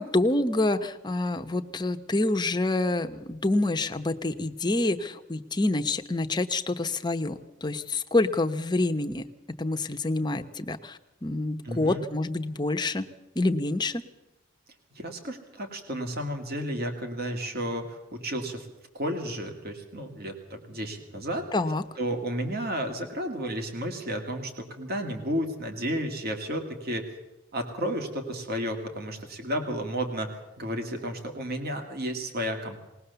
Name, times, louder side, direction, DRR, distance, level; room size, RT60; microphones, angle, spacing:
voice 1, 0.0-9.2 9.6-13.1 13.4-14.0 21.5-21.8, left 2 dB, 20° left, 7 dB, 0.9 m, -27 dB
voice 2, 11.6-12.0 15.0-18.7 18.9-21.5 22.0-27.1 27.5-32.8, equal, 45° right, 5 dB, 2.2 m, -32 dB
20.0 x 19.0 x 6.9 m, 0.97 s
head